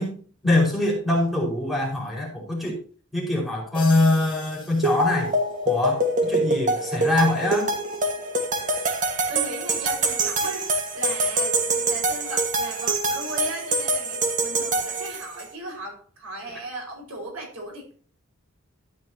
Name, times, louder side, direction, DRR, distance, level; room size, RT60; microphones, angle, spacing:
voice 1, 0.0-2.8 3.1-5.3 5.6-7.7, left 2 dB, ahead, -4 dB, 5.3 m, -23 dB
sound 1, 3.7-5.8, left 6 dB, 25° left, 2.4 m, -41 dB
sound 2, 4.8-15.5, right 2 dB, 35° right, 1.7 m, -25 dB
voice 2, 9.3-18.0, right 1 dB, 75° right, 1 dB, 5.3 m, -37 dB
13.5 x 11.0 x 2.9 m, 0.42 s
head